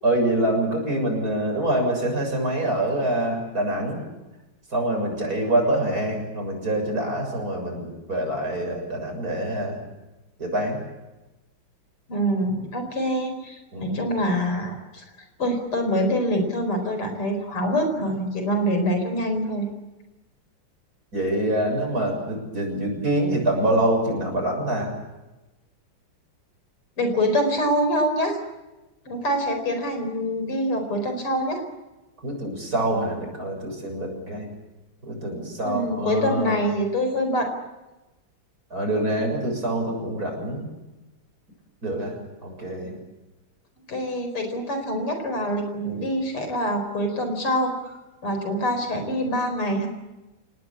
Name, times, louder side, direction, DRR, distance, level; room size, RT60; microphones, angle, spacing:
voice 1, 0.0-4.0 4.7-9.9 10.4-10.8 13.7-14.0 21.1-24.9 32.2-34.5 35.0-36.6 38.7-40.7 41.8-42.2 42.4-43.0, right 1 dB, 40° right, 2 dB, 7.5 m, -25 dB
voice 2, 12.1-15.0 15.4-19.7 27.0-28.4 29.1-31.6 35.6-37.5 43.9-49.9, equal, 85° left, 6 dB, 5.6 m, -25 dB
29.5 x 19.0 x 8.7 m, 1.1 s
omnidirectional pair, 2.4 m